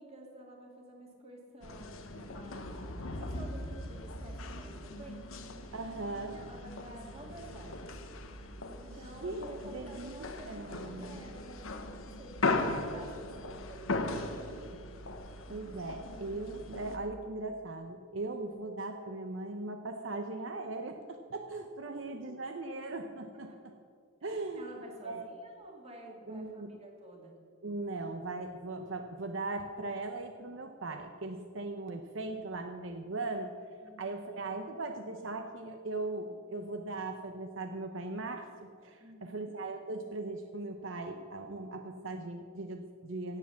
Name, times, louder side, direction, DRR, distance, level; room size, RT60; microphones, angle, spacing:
voice 1, 0.0-5.8 6.3-7.9 8.7-14.8 21.8-22.8 23.5-23.6 24.6-27.4 33.8-34.2 39.0-39.5, right 1 dB, 30° right, 0 dB, 2.5 m, -51 dB
sound 1, 1.6-17.0, left 2 dB, 85° left, 1.1 m, -39 dB
voice 2, 5.7-6.4 8.9-9.4 9.7-10.2 10.5-11.3 15.5-23.7 24.2-24.7 25.0-25.3 26.3-26.7 27.6-33.5 34.0-43.4, right 2 dB, 65° right, 6 dB, 0.8 m, -39 dB
16.5 x 7.6 x 7.2 m, 2.2 s
head